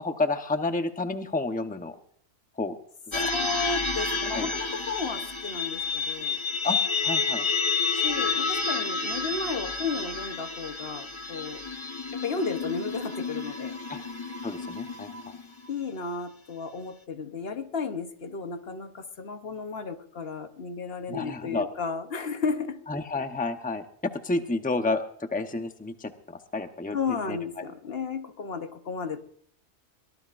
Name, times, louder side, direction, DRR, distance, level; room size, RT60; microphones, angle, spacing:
voice 1, 0.0-2.0 2.6-2.8 3.1-3.3 4.3-4.5 6.6-7.4 13.9-14.0 14.4-15.3 21.1-21.7 22.9-27.0 27.3-27.7, left 3 dB, 10° left, 7 dB, 0.8 m, -30 dB
sound 1, 3.1-15.7, left 4 dB, 25° left, 1.1 m, -30 dB
voice 2, 3.3-6.4 8.0-11.6 12.1-13.8 15.7-22.8 26.9-29.2, left 5 dB, 60° left, 8 dB, 1.2 m, -33 dB
23.0 x 18.5 x 2.5 m, 0.63 s
omnidirectional pair, 1.2 m